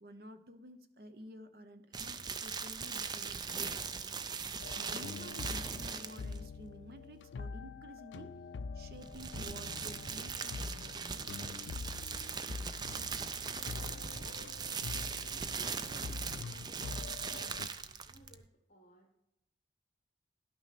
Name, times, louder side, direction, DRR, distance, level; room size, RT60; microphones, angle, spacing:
voice 1, 0.0-4.2 4.7-8.4 8.7-11.3, equal, 55° right, 9 dB, 0.8 m, -51 dB
sound 1, 1.9-6.4 8.9-18.4, right 5 dB, 25° right, 0.3 m, -40 dB
sound 2, 4.6-17.7, left 4 dB, 85° left, 0.3 m, -45 dB
voice 2, 13.8-18.4 18.7-19.1, left 1 dB, 45° left, 0 dB, 1.3 m, -60 dB
11.5 x 6.1 x 4.2 m, 0.85 s
head